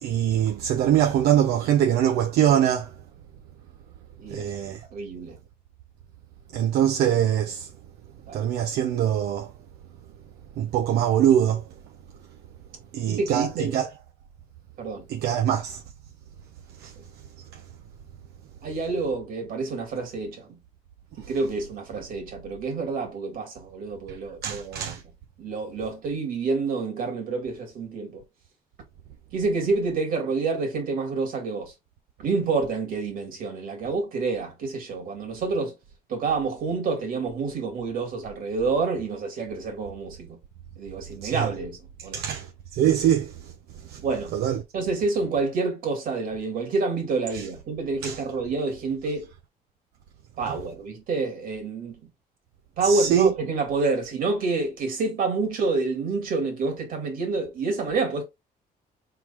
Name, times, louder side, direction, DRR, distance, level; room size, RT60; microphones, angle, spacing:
voice 1, 0.0-2.9 4.3-4.8 6.5-7.7 8.3-9.5 10.6-11.6 12.9-13.9 15.1-15.8 16.8-16.9 17.5-17.6 24.1-24.2 24.4-25.0 41.2-41.5 42.1-43.5 43.8-44.0 44.3-44.6 47.3-47.4 48.0-48.2 52.8-53.3, right 10 dB, 85° right, 0.7 m, -23 dB
voice 2, 4.2-4.5 4.9-5.4 8.3-8.4 13.1-13.8 14.8-15.0 17.0-17.1 18.6-20.6 21.2-24.9 25.4-28.2 29.3-31.7 32.2-35.8 36.1-40.4 40.8-42.2 44.0-44.3 44.7-49.3 50.4-52.0 52.8-58.2, right 4 dB, 60° right, 2.0 m, -28 dB
4.6 x 3.8 x 2.5 m
cardioid pair, 155°, 16 cm